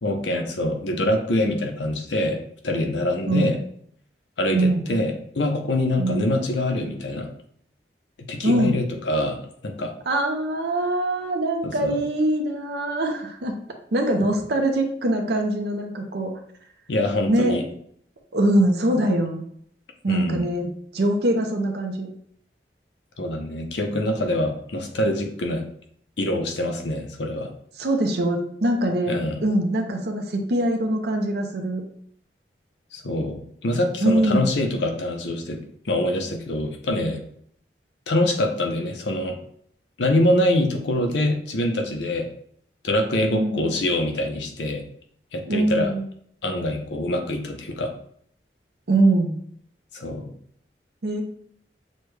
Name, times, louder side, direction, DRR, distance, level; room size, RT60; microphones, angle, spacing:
voice 1, 0.0-2.4 2.6-3.6 4.4-7.3 8.3-9.9 11.6-12.0 16.9-17.6 20.1-20.5 23.2-25.6 26.2-27.5 29.1-29.4 32.9-35.6 35.8-37.2 38.1-39.4 40.0-42.3 42.8-44.8 45.3-45.9 46.4-47.9 49.9-50.2, left 1 dB, 75° left, 4 dB, 0.7 m, -24 dB
voice 2, 4.5-4.9 6.0-6.3 8.4-8.8 10.1-13.6 13.9-16.3 17.3-17.6 18.3-19.4 20.0-22.1 27.8-31.8 34.0-34.5 43.3-43.7 45.5-46.0 48.9-49.4 51.0-51.2, right 1 dB, 60° right, 3 dB, 0.6 m, -23 dB
6.5 x 2.2 x 3.2 m, 0.65 s
head